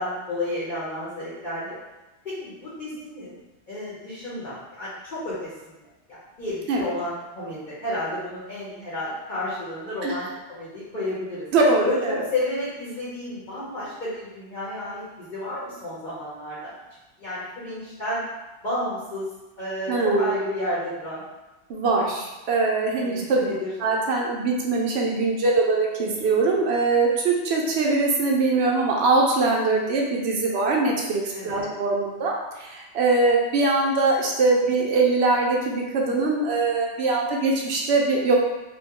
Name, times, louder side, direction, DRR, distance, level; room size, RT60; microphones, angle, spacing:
voice 1, 0.0-1.7 2.2-3.4 3.7-5.8 6.1-11.5 11.8-16.7 17.2-18.2 18.6-19.3 19.6-21.2 23.0-23.7 31.3-31.7, left 1 dB, 50° left, -9 dB, 1.0 m, -31 dB
voice 2, 11.5-12.2 19.9-20.3 21.7-23.5 23.8-38.3, right 3 dB, 75° right, -1 dB, 0.8 m, -22 dB
3.0 x 2.0 x 3.6 m, 1.0 s
omnidirectional pair, 1.2 m